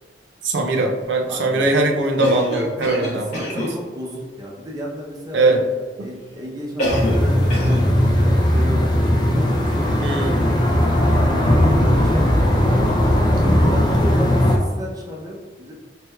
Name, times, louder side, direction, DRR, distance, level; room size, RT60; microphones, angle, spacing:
voice 1, 0.4-3.3 5.3-5.6 10.0-10.4, right 2 dB, 85° right, 2 dB, 0.5 m, -20 dB
voice 2, 1.3-1.7 3.0-5.7 6.0-10.8 11.1-11.5 11.8-15.7, equal, 20° right, -3 dB, 0.6 m, -33 dB
Cough, 2.2-3.8 6.8-7.3 7.5-7.9, equal, 40° left, 1.4 m, -25 dB
sound 1, 6.8-14.6, left 1 dB, 25° left, 0.4 m, -17 dB
3.3 x 3.1 x 2.3 m, 1.4 s
head